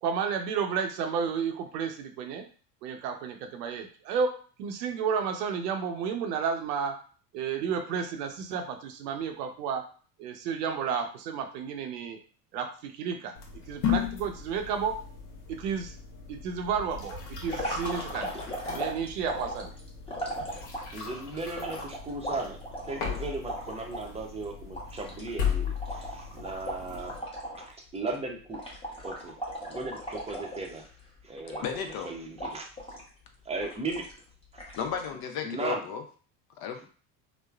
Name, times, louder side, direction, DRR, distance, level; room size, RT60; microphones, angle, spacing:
voice 1, 0.0-2.5 2.8-7.0 7.3-9.8 10.2-12.2 12.5-13.3 13.7-15.0 15.5-15.9 16.3-18.3 18.7-19.7, right 6 dB, 85° right, 5 dB, 0.6 m, -32 dB
sound 1, 13.3-27.2, left 8 dB, 70° left, 0.9 m, -36 dB
sound 2, 17.4-21.0 21.6-24.1 24.4-24.5 24.7-27.7 27.9-28.2 28.5-31.0 31.5-32.0 32.4-33.1 33.6-34.2 34.6-35.1, right 1 dB, 10° left, 0.9 m, -37 dB
voice 2, 20.9-22.6 22.9-27.1 27.9-28.6 29.0-29.3 29.7-30.8 31.2-31.6 32.0-32.7 33.5-34.0 35.4-35.8, right 3 dB, 15° right, 1 dB, 0.6 m, -36 dB
voice 3, 31.5-32.1 34.8-36.0 36.6-36.8, left 7 dB, 50° left, 5 dB, 0.7 m, -34 dB
3.1 x 2.1 x 2.3 m, 0.41 s
supercardioid pair, 90°, 47 cm